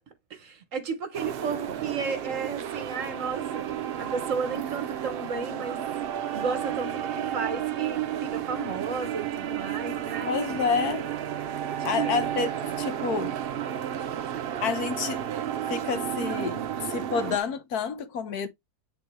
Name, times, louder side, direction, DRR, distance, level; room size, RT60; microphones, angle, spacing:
voice 1, 0.3-3.7 4.0-5.8 6.3-10.3 11.8-12.3, right 5 dB, 55° right, 1.4 m, -33 dB
sound 1, 1.1-17.4, right 10 dB, 85° right, 0.5 m, -32 dB
voice 2, 10.3-11.0 11.8-13.3 14.6-15.3 15.7-16.6 16.9-18.5, left 6 dB, 70° left, 1.4 m, -29 dB
7.8 x 3.7 x 3.2 m
omnidirectional pair, 1.7 m